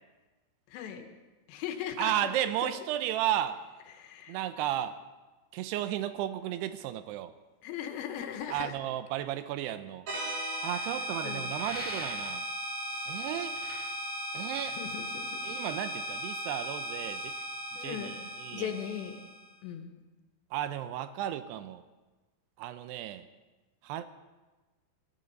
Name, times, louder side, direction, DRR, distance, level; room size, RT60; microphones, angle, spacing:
voice 1, 0.7-1.1 1.5-2.8 3.9-4.4 7.6-8.7 10.7-10.8 11.2-11.5 12.9-13.0 14.7-15.4 17.8-18.2 18.5-19.2 19.6-20.0, left 9 dB, 80° left, 6 dB, 3.1 m, -39 dB
voice 2, 2.0-3.6 4.3-5.0 5.5-7.3 8.5-10.1 10.6-12.5 13.1-13.6 14.3-14.8 15.4-17.3 17.8-18.7 20.5-21.8 22.6-23.3 23.8-24.1, right 12 dB, 85° right, 11 dB, 2.4 m, -34 dB
sound 1, 10.1-19.5, equal, 50° right, 4.0 m, -37 dB
sound 2, 11.6-12.6 13.3-15.0, left 1 dB, 15° left, 0.4 m, -44 dB
20.0 x 16.5 x 4.0 m, 1.2 s
omnidirectional pair, 5.4 m